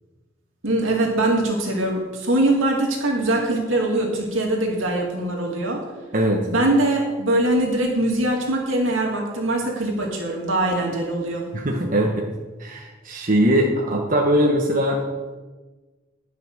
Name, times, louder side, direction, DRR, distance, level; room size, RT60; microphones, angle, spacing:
voice 1, 0.6-5.8 6.5-11.5, right 1 dB, 80° right, 0 dB, 2.4 m, -22 dB
voice 2, 6.1-6.5 11.5-12.3 12.6-15.0, equal, 45° right, -1 dB, 1.2 m, -21 dB
11.0 x 5.7 x 6.6 m, 1.3 s
head